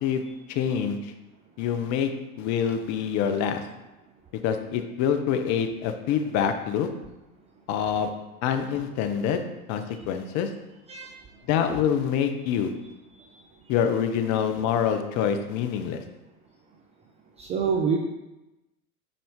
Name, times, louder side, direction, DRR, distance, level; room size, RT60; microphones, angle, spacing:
voice 1, 0.5-1.1 1.6-2.1 2.4-3.6 4.4-6.9 7.7-8.1 8.4-9.4 9.7-10.5 11.5-12.7 13.7-16.0, left 8 dB, 40° left, 7 dB, 0.9 m, -26 dB
voice 2, 17.4-18.0, right 6 dB, 15° right, 1 dB, 0.3 m, -25 dB
9.2 x 4.4 x 3.7 m, 1.0 s
figure-of-eight pair, 85°, 45 cm